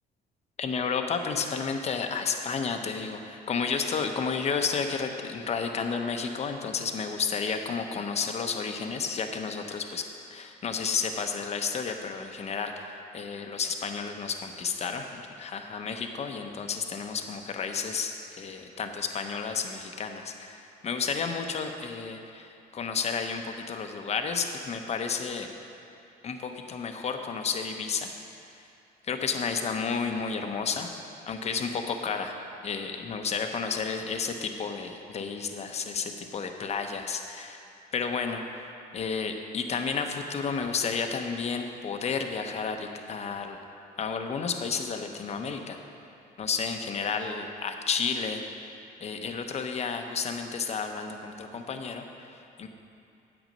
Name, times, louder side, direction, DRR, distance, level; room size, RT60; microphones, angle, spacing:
voice 1, 0.6-10.0 10.3-25.5 26.2-28.1 29.0-30.9 31.3-32.4 32.6-37.7 37.9-43.6 44.0-45.8 46.4-48.4 49.0-52.7, left 5 dB, 40° left, 5 dB, 0.8 m, -32 dB
9.2 x 8.0 x 5.3 m, 2.6 s
cardioid pair, 110°, 17 cm